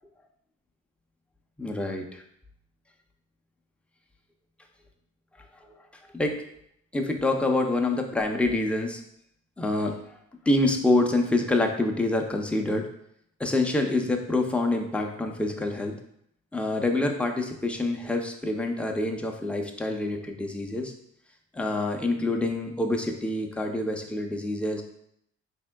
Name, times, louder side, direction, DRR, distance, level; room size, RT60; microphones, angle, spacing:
voice 1, 1.6-2.2 5.6-5.7 6.1-6.4 6.9-9.0 9.6-10.0 10.5-12.9 13.4-16.0 16.5-20.9 21.5-24.8, left 2 dB, 5° left, 2 dB, 0.4 m, -26 dB
4.2 x 3.5 x 2.2 m, 0.74 s
cardioid pair, 90°, 30 cm